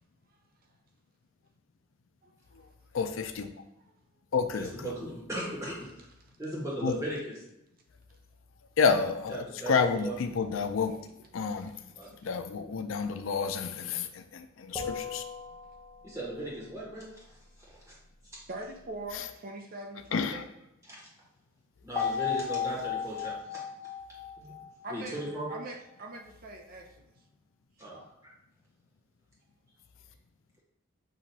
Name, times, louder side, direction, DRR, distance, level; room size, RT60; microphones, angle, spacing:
voice 1, 2.9-3.5 4.3-4.9 6.8-6.9 8.8-11.0 11.3-11.7 12.2-15.2 19.1-19.3 20.1-20.4, left 5 dB, 90° left, 8 dB, 0.4 m, -29 dB
voice 2, 4.5-6.1 6.4-7.3 9.3-10.1 12.0-12.1 16.0-17.4 17.9-18.0 20.9-21.0 21.8-23.6 24.4-24.5 24.9-25.5 27.8-28.0, right 1 dB, 15° right, -5 dB, 1.6 m, -37 dB
sound 1, 14.7-16.3 22.0-25.3, left 7 dB, 10° left, 0.8 m, -35 dB
voice 3, 18.5-20.4 24.8-25.2 25.5-27.1 27.8-28.1, right 2 dB, 50° right, 3 dB, 0.5 m, -42 dB
6.2 x 3.0 x 2.8 m, 0.86 s
head